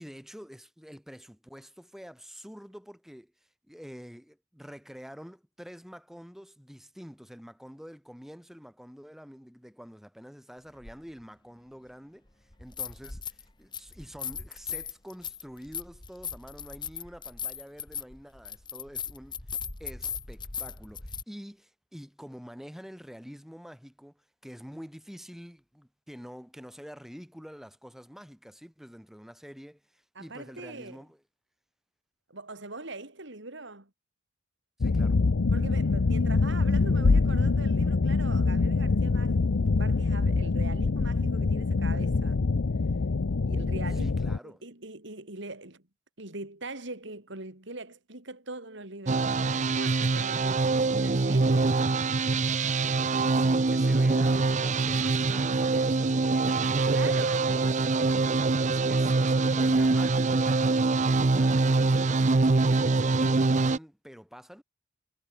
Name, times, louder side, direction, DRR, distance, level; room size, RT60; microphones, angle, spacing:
voice 1, 0.0-3.3 3.7-19.4 19.8-31.2 34.8-35.2 43.9-44.6 53.3-58.1 58.6-61.6 61.9-64.6, equal, ahead, 5.1 m, -47 dB
sound 1, 10.8-10.9 12.5-13.4 13.7-21.2, left 7 dB, 25° left, 1.9 m, -38 dB
voice 2, 30.2-31.0 32.3-33.9 35.5-39.4 39.7-42.4 43.5-44.2 44.4-45.8 46.2-51.7 56.9-58.3, right 2 dB, 65° right, 4.2 m, -42 dB
sound 2, 34.8-44.4, left 3 dB, 80° left, 0.6 m, -25 dB
sound 3, 49.1-63.8, right 3 dB, 40° right, 0.7 m, -24 dB
head